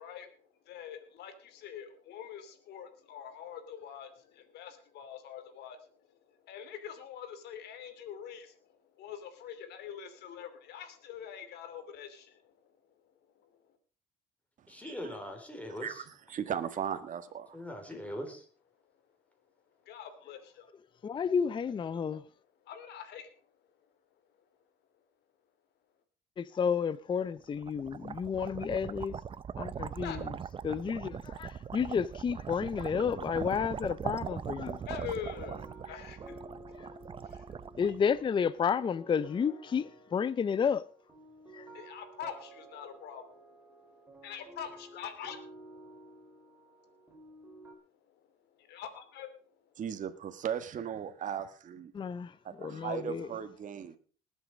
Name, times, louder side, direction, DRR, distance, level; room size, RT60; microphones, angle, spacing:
voice 1, 0.0-12.8 13.0-13.8 19.8-20.7 22.6-23.5 23.8-23.9 29.9-30.2 34.7-36.4 36.8-36.9 37.2-37.4 37.8-37.9 41.4-46.5 46.9-49.7, left 8 dB, 75° left, 2.7 m, -46 dB
voice 2, 14.7-16.0 17.5-18.4, equal, 10° left, 4.5 m, -41 dB
voice 3, 16.3-17.5 49.8-51.9 52.4-54.0, right 9 dB, 50° right, 1.5 m, -37 dB
voice 4, 21.0-22.2 26.4-29.1 29.6-30.2 30.6-34.8 37.8-40.8 41.5-41.6 51.9-52.3 52.6-53.3, left 6 dB, 30° left, 0.5 m, -31 dB
sound 1, 27.3-38.5, right 7 dB, 30° right, 0.6 m, -40 dB
sound 2, 35.3-47.7, right 1 dB, 15° right, 3.8 m, -53 dB
20.0 x 8.1 x 5.1 m
cardioid pair, 110°, 17 cm